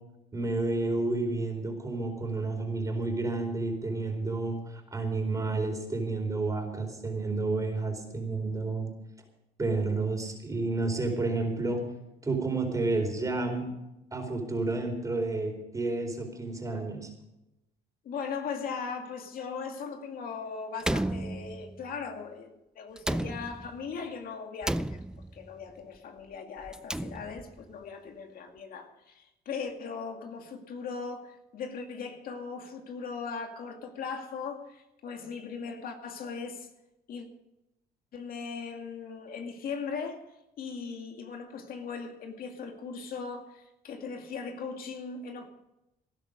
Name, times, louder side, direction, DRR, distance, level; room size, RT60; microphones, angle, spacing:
voice 1, 0.3-8.9 9.6-11.8 12.2-13.6 14.1-17.1, right 3 dB, 20° right, 4.4 m, -30 dB
voice 2, 18.0-25.0 25.3-36.7 37.1-37.3 38.1-40.2 40.6-45.5, left 5 dB, 60° left, 2.3 m, -39 dB
Slam, 20.8-21.9 23.0-23.9 24.6-25.5 26.6-27.6, right 1 dB, 5° right, 0.4 m, -33 dB
18.5 x 11.5 x 5.2 m
cardioid pair, 110°, 17 cm